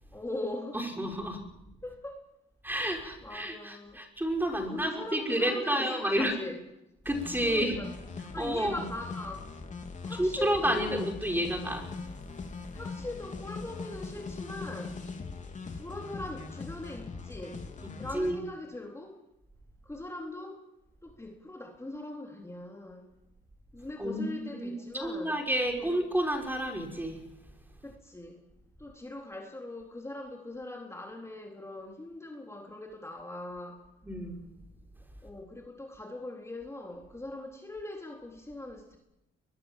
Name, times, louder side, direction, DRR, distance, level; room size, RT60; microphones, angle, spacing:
voice 1, 0.1-0.8 1.8-2.3 2.8-4.0 4.5-6.6 7.4-7.9 8.3-11.4 12.7-15.0 15.8-17.7 18.0-19.2 19.8-20.6 21.0-23.1 23.7-25.4 25.7-26.0 27.8-28.4 28.8-33.8 35.2-39.0, left 2 dB, 15° left, 1 dB, 4.0 m, -41 dB
voice 2, 0.7-1.4 2.6-6.4 7.1-7.8 8.4-8.8 10.2-11.9 18.1-18.4 24.0-24.7 25.0-27.2 34.0-34.4, equal, 10° right, 3 dB, 5.6 m, -30 dB
sound 1, 7.0-18.3, left 4 dB, 40° left, 4.1 m, -41 dB
23.0 x 22.0 x 7.6 m, 0.89 s
cardioid pair, 90°, 20 cm